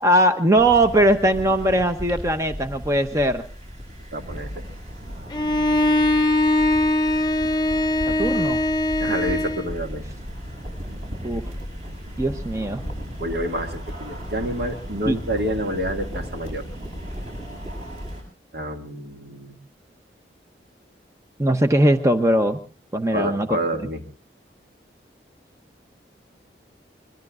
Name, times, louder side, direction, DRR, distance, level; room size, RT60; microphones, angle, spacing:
voice 1, 0.0-3.4 8.2-8.6 9.1-9.2 11.2-11.4 12.2-12.8 15.0-15.2 21.4-22.6 22.9-23.6, right 1 dB, 15° right, 7 dB, 0.7 m, -20 dB
sound 1, 0.6-18.2, equal, 40° right, 7.2 m, -35 dB
voice 2, 4.1-4.5 9.0-10.0 13.2-16.6 18.5-19.6 23.1-24.0, right 1 dB, 65° right, 4 dB, 2.1 m, -28 dB
Bowed string instrument, 5.3-9.7, left 1 dB, 25° left, 0.8 m, -21 dB
25.0 x 22.5 x 2.5 m, 0.36 s
head